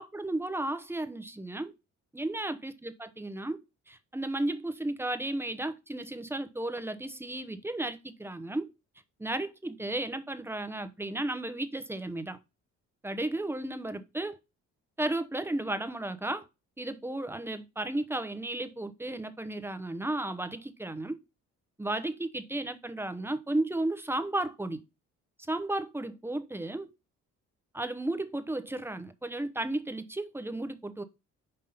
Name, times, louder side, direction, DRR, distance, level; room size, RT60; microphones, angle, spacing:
voice 1, 0.0-1.7 2.1-3.6 3.9-8.7 9.2-12.4 13.0-14.4 15.0-16.4 16.8-21.2 21.8-24.8 25.5-26.9 27.7-31.0, right 1 dB, 10° right, 0.8 m, -34 dB
5.5 x 3.6 x 5.5 m
cardioid pair, 90°, 30 cm